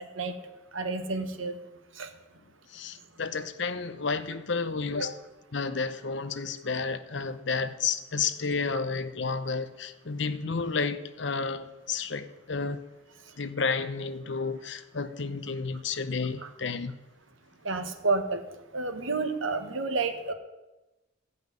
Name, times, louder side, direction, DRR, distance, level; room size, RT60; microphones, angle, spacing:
voice 1, 0.7-1.6 2.0-2.1 16.4-16.5 17.6-18.4 18.7-20.3, right 3 dB, 85° right, 1.4 m, -30 dB
voice 2, 2.7-5.2 5.5-12.8 13.4-16.9, left 4 dB, 65° left, 0.8 m, -31 dB
14.5 x 5.6 x 9.5 m
head